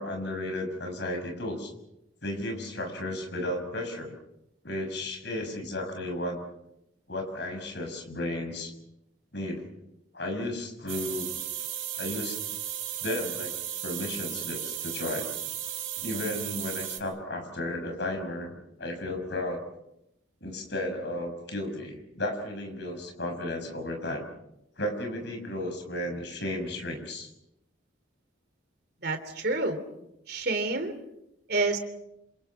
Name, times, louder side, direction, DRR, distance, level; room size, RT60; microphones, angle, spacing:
voice 1, 0.0-1.7 2.2-4.1 4.6-6.4 7.1-8.7 9.3-9.7 10.1-11.3 12.0-12.4 13.0-13.5 13.8-15.3 16.0-19.6 20.4-24.2 24.8-27.3, left 1 dB, 60° left, 4 dB, 6.0 m, -34 dB
sound 1, 10.9-17.0, right 11 dB, 85° right, 4.5 m, -35 dB
voice 2, 29.0-29.8 30.3-30.9 31.5-31.8, right 3 dB, 55° right, 8 dB, 3.3 m, -28 dB
28.5 x 27.0 x 5.9 m, 0.85 s
head